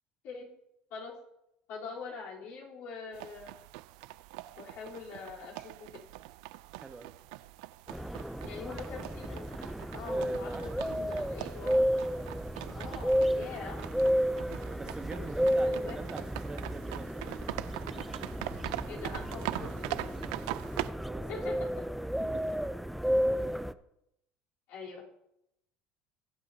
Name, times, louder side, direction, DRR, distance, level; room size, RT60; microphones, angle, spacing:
voice 1, 1.7-3.5 4.6-5.9 8.4-9.5 9.9-11.9 12.7-13.8 15.1-16.0 18.9-20.2 21.3-21.7 24.7-25.0, left 5 dB, 70° left, -4 dB, 3.6 m, -43 dB
sound 1, 3.1-20.9, right 18 dB, 85° right, 0.4 m, -42 dB
voice 2, 6.8-7.1 10.1-10.9 14.7-17.2 21.1-21.4 22.2-22.6, right 4 dB, 20° right, 7 dB, 1.2 m, -44 dB
sound 2, 7.9-23.7, equal, ahead, 0.4 m, -32 dB
20.5 x 8.1 x 2.8 m, 0.82 s
supercardioid pair, 100°, 4 cm